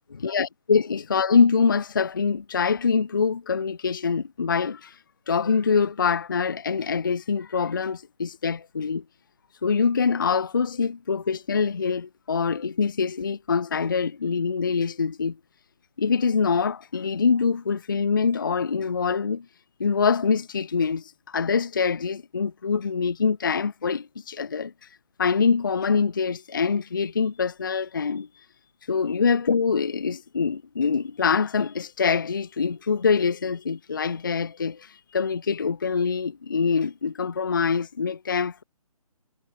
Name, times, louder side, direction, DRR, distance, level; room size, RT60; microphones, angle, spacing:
voice 1, 0.2-5.0 5.3-9.0 9.6-15.4 16.0-19.5 19.8-24.7 25.2-28.3 28.9-38.6, left 5 dB, 35° left, 0.4 m, -24 dB
figure-of-eight pair, 145°, 19 cm